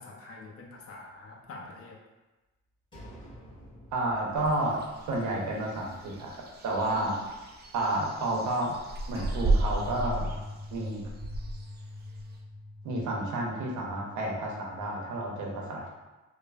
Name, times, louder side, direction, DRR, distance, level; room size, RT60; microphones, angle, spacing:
voice 1, 0.0-2.0 6.9-7.3, left 3 dB, 50° left, -1 dB, 0.6 m, -45 dB
sound 1, 2.9-6.0 6.4-6.5 9.1-15.2, left 2 dB, 15° left, 1.4 m, -45 dB
voice 2, 3.9-4.8 5.1-6.3 6.6-7.1 7.7-8.7 9.1-10.3 10.7-11.0 12.8-15.9, right 1 dB, 75° right, -2 dB, 0.7 m, -30 dB
sound 2, 4.3-12.4, right 2 dB, 35° right, 0.4 m, -34 dB
3.1 x 2.0 x 2.3 m, 1.1 s
cardioid pair, 90°, 30 cm